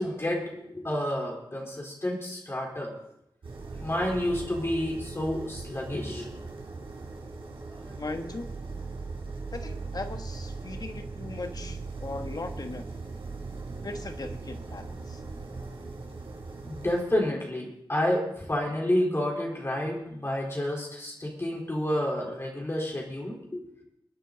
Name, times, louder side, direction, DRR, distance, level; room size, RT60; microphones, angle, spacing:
voice 1, 0.0-2.9 3.7-6.3 7.7-7.9 16.6-23.6, left 1 dB, 25° left, -2 dB, 4.1 m, -30 dB
sound 1, 3.4-17.0, right 3 dB, 75° right, 4.3 m, -39 dB
voice 2, 8.0-8.5 9.5-12.9 13.8-15.2, left 2 dB, 45° left, 6 dB, 1.5 m, -38 dB
27.5 x 9.3 x 4.0 m, 0.78 s
wide cardioid pair, 85°, 9 cm